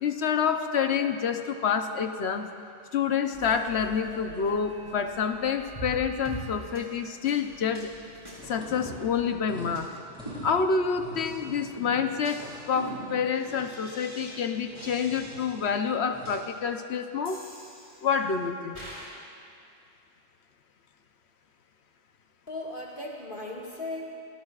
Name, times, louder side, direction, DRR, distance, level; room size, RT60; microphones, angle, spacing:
voice 1, 0.0-2.5 2.9-7.9 8.4-9.9 10.4-17.5 18.0-18.8, left 6 dB, 70° left, 7 dB, 1.0 m, -28 dB
sound 1, 3.3-9.8, equal, 65° right, 2.7 m, -50 dB
sound 2, 5.8-6.0 6.3-6.5 6.8-6.9 7.3-7.4 7.8-7.9 8.3-8.4 8.8-9.4 9.8-9.9 10.3-10.9 11.3-11.4 11.8-14.4 14.8-15.7 16.3-16.4 17.3-18.2 18.8-19.1, right 1 dB, 25° right, 4.9 m, -42 dB
sound 3, 8.4-16.5, right 1 dB, 5° right, 4.3 m, -46 dB
voice 2, 22.5-24.2, left 2 dB, 45° left, -4 dB, 2.1 m, -37 dB
26.5 x 18.0 x 2.4 m, 2.5 s
omnidirectional pair, 1.2 m